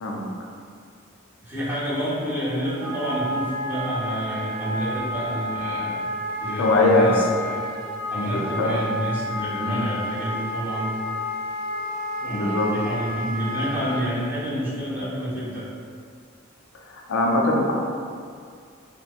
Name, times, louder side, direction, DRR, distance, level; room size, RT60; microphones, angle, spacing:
voice 1, 1.4-6.1 6.4-7.6 8.1-11.0 12.2-15.7, equal, 10° right, -11 dB, 0.8 m, -29 dB
Wind instrument woodwind instrument, 2.8-14.1, left 1 dB, 45° right, 0.4 m, -30 dB
voice 2, 6.6-7.1 8.2-8.8 9.7-9.8 12.3-12.7 17.1-17.7, left 2 dB, 70° left, -1 dB, 0.4 m, -21 dB
2.7 x 2.1 x 2.3 m, 2.2 s
head